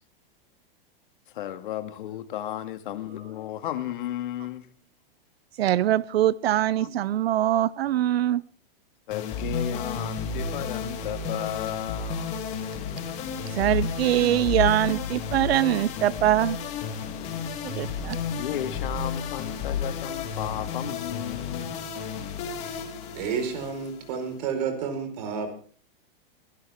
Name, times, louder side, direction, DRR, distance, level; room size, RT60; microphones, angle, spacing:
voice 1, 1.3-4.7 6.8-6.9 9.1-12.4 17.7-18.0 18.4-21.8, left 12 dB, 55° left, 1.9 m, -34 dB
voice 2, 5.6-8.4 13.5-16.6 17.6-18.2, right 12 dB, 80° right, 0.7 m, -23 dB
sound 1, 9.1-24.5, left 6 dB, 20° left, 2.7 m, -32 dB
voice 3, 23.1-25.5, right 6 dB, 40° right, 4.7 m, -30 dB
23.0 x 17.5 x 3.6 m
supercardioid pair, 175°, 30 cm